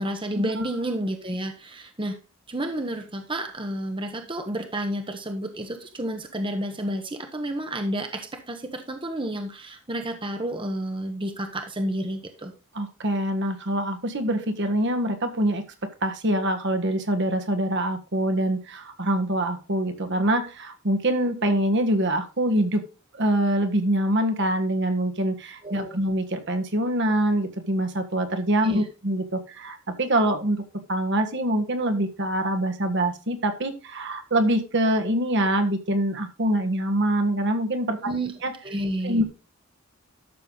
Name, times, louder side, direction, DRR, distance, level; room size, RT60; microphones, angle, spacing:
voice 1, 0.0-2.2 2.5-12.5 25.6-26.0 28.6-28.9 38.0-38.3 38.6-39.2, right 1 dB, 25° right, 5 dB, 1.1 m, -30 dB
voice 2, 12.7-22.8 23.1-30.6 30.9-38.0 38.4-38.5 39.0-39.2, right 1 dB, 55° right, 6 dB, 1.5 m, -24 dB
12.0 x 6.8 x 3.9 m, 0.32 s
head